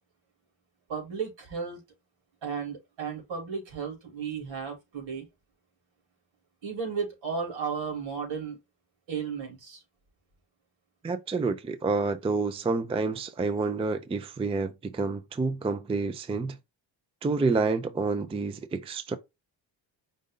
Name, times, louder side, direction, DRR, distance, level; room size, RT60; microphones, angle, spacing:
voice 1, 0.9-1.8 2.4-5.3 6.6-8.6 9.1-9.8, right 6 dB, 70° right, 3.1 m, -34 dB
voice 2, 11.0-16.6 17.2-19.2, right 3 dB, 15° right, 0.4 m, -28 dB
5.2 x 2.6 x 3.7 m
cardioid pair, 115°, 46 cm